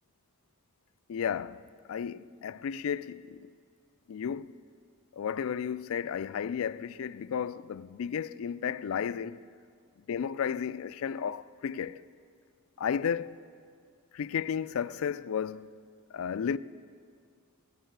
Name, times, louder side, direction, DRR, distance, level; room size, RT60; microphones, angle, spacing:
voice 1, 1.1-1.6 1.9-3.5 4.1-4.5 5.1-9.4 10.1-12.0 12.8-13.4 14.1-15.7 16.1-16.6, left 7 dB, 70° left, 0.3 m, -33 dB
17.0 x 13.5 x 4.6 m
head